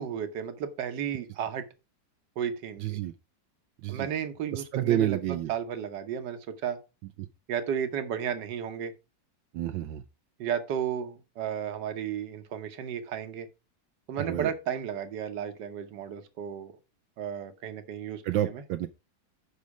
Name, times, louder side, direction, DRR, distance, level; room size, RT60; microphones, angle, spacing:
voice 1, 0.0-1.7 2.4-3.0 3.9-6.8 7.5-8.9 10.4-13.5 14.1-16.7 17.2-18.6, right 8 dB, 70° right, 1.6 m, -33 dB
voice 2, 2.8-3.1 3.8-4.1 4.5-5.5 9.5-10.0 14.2-14.5 18.2-18.9, right 12 dB, 85° right, 1.4 m, -29 dB
8.4 x 5.5 x 4.8 m
omnidirectional pair, 2.0 m